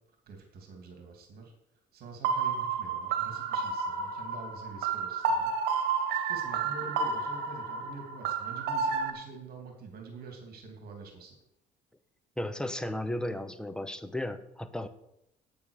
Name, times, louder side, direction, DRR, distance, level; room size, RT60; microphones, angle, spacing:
voice 1, 0.3-1.5 1.9-5.5 6.3-11.3, right 4 dB, 65° right, 3 dB, 2.8 m, -46 dB
sound 1, 2.2-9.1, right 5 dB, 85° right, 1.5 m, -31 dB
voice 2, 12.4-14.9, left 1 dB, 5° left, 11 dB, 0.9 m, -34 dB
8.9 x 8.5 x 6.7 m, 0.80 s
cardioid pair, 110°, 17 cm